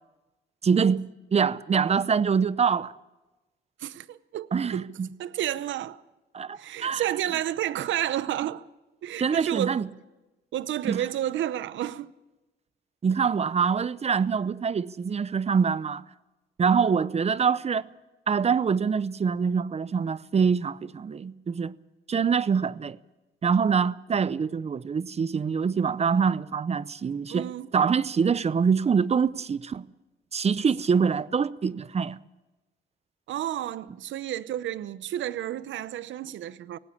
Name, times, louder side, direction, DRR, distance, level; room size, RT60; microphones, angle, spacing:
voice 1, 0.6-1.0 1.3-2.9 4.5-5.1 6.3-7.0 9.2-9.9 10.8-11.0 13.0-16.0 16.6-17.9 18.3-21.7 22.1-23.0 23.4-27.5 27.7-29.8 30.3-32.2, right 6 dB, 30° right, 0.6 m, -25 dB
voice 2, 3.8-4.9 5.2-6.0 6.6-8.7 9.0-9.8 10.5-12.1 27.3-27.7 33.3-36.8, right 12 dB, 70° right, 0.8 m, -31 dB
18.0 x 16.5 x 8.6 m
cardioid pair, 90°, 20 cm